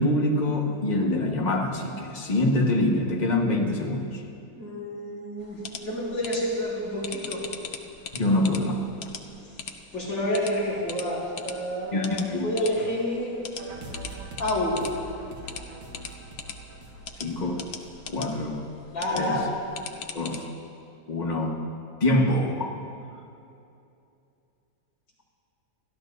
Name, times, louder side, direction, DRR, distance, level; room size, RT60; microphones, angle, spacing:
voice 1, 0.0-4.2 8.1-8.8 11.9-12.5 17.2-17.7 18.1-18.6 19.1-19.3 20.1-20.5 21.1-21.6 22.0-22.8, left 1 dB, 25° left, 0 dB, 1.2 m, -25 dB
voice 2, 4.5-7.4 9.9-13.4 14.4-14.8 18.9-19.4, left 1 dB, 75° left, -7 dB, 5.1 m, -29 dB
sound 1, 5.4-20.4, left 6 dB, 60° left, 1.1 m, -42 dB
sound 2, 13.6-18.6, right 2 dB, 65° right, 2.0 m, -42 dB
29.5 x 12.5 x 2.7 m, 2.6 s
omnidirectional pair, 2.0 m